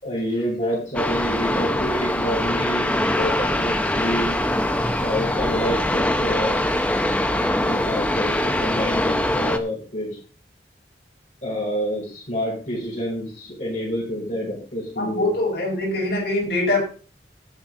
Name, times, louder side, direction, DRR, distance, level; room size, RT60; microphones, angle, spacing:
voice 1, 0.0-4.3 5.0-6.6 7.3-10.2 11.4-15.3, equal, 45° left, -7 dB, 5.6 m, -28 dB
sound 1, 0.9-9.6, left 1 dB, 10° left, 0.9 m, -23 dB
voice 2, 15.0-16.8, left 2 dB, 65° left, -2 dB, 5.1 m, -23 dB
18.0 x 6.1 x 3.9 m, 0.37 s
head